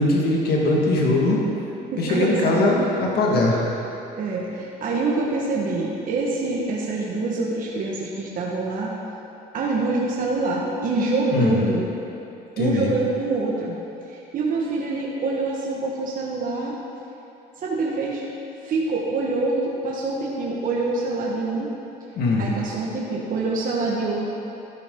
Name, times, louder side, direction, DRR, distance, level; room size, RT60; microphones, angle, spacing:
voice 1, 0.0-1.4 2.0-3.6 11.3-11.6 12.6-12.9 22.2-22.5, left 2 dB, 70° left, -3 dB, 1.9 m, -20 dB
voice 2, 1.9-2.8 4.2-8.9 9.5-11.9 12.6-13.8 14.1-16.8 17.6-18.2 18.6-21.7 22.4-24.3, right 3 dB, 55° right, -4 dB, 1.5 m, -25 dB
13.5 x 10.5 x 3.8 m, 2.9 s
cardioid pair, 110°, 17 cm